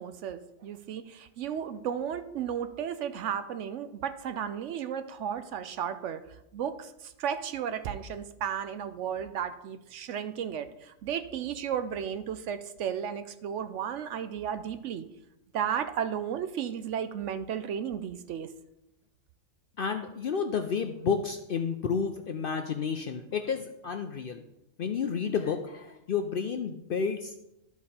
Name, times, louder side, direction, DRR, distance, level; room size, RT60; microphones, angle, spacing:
voice 1, 0.0-6.2 6.5-15.1 15.5-18.5, right 8 dB, 70° right, 11 dB, 0.8 m, -34 dB
voice 2, 19.8-24.4 24.8-27.4, left 6 dB, 60° left, 6 dB, 0.6 m, -31 dB
12.5 x 4.7 x 4.2 m, 0.88 s
omnidirectional pair, 1.4 m